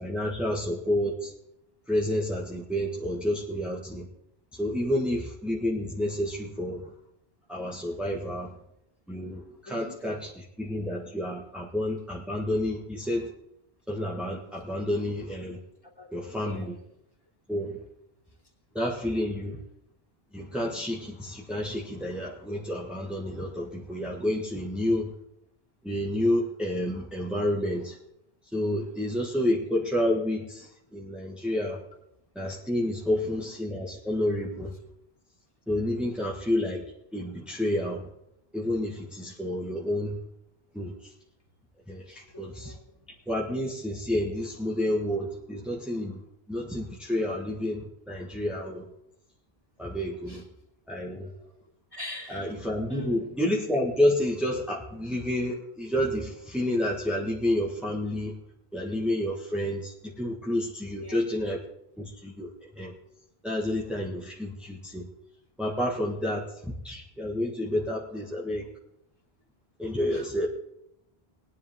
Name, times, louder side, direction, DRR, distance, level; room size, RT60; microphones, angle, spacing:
voice 1, 0.0-1.3 1.9-4.1 4.5-6.9 7.5-8.5 9.1-13.3 13.9-15.6 16.1-16.8 17.5-17.8 18.7-19.6 20.3-25.1 25.8-28.0 28.5-31.8 32.4-34.7 35.7-36.8 37.1-38.1 38.5-40.2 40.7-41.1 41.9-42.8 43.3-46.2 46.5-48.9 49.8-50.4 50.9-51.3 52.3-58.4 58.7-61.6 62.0-62.5 62.8-62.9 63.4-65.1 65.6-68.7 69.8-70.5, left 1 dB, ahead, -4 dB, 1.7 m, -29 dB
voice 2, 9.6-10.1 16.0-16.8 42.3-43.1 50.3-50.4 51.1-51.5 51.9-52.5 52.9-53.3 61.0-61.3 70.1-70.3, left 2 dB, 20° left, -3 dB, 3.0 m, -44 dB
19.5 x 10.0 x 3.7 m, 0.79 s
omnidirectional pair, 1.1 m